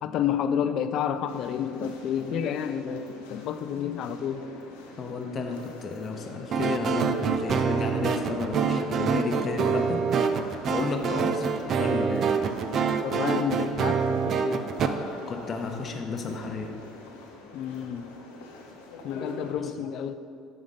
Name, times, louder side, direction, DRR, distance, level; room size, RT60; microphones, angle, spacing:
voice 1, 0.0-4.5 10.7-11.0 13.0-14.7 17.5-18.1 19.0-20.1, left 8 dB, 60° left, 11 dB, 0.3 m, -30 dB
sound 1, 1.3-19.5, left 3 dB, 90° left, 0.8 m, -45 dB
voice 2, 5.0-7.1 7.4-10.0 10.7-12.4 15.3-16.8 19.6-19.7, left 4 dB, 40° left, 4 dB, 0.8 m, -32 dB
sound 2, 6.5-14.9, right 6 dB, 50° right, 0.4 m, -26 dB
6.5 x 3.5 x 5.5 m, 2.5 s
supercardioid pair, 80°, 0 cm